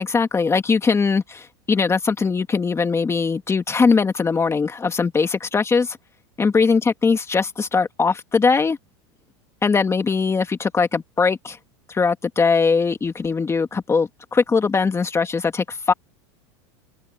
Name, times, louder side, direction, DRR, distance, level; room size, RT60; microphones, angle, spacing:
voice 1, 0.0-6.0 6.4-8.8 9.6-11.6 11.9-15.9, left 5 dB, 15° left, 2.1 m, -20 dB
supercardioid pair, 115°, 15 cm